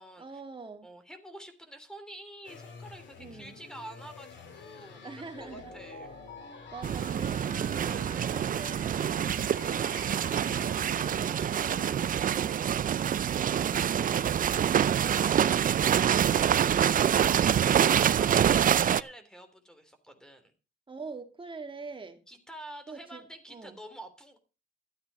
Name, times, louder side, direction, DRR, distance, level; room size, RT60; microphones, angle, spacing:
voice 1, 0.2-0.9 3.2-3.6 5.0-6.1 6.7-10.0 20.9-22.2 22.9-23.8, right 4 dB, 25° right, 6 dB, 2.3 m, -46 dB
voice 2, 0.8-6.1 17.1-20.5 22.3-24.4, right 1 dB, 5° left, 9 dB, 3.2 m, -48 dB
sound 1, 2.4-11.4, left 5 dB, 65° left, 2.8 m, -50 dB
sound 2, 5.3-12.1, left 2 dB, 35° left, 4.4 m, -48 dB
sound 3, 6.8-19.0, right 9 dB, 45° right, 0.5 m, -26 dB
13.0 x 8.6 x 5.4 m, 0.34 s
cardioid pair, 90°, 20 cm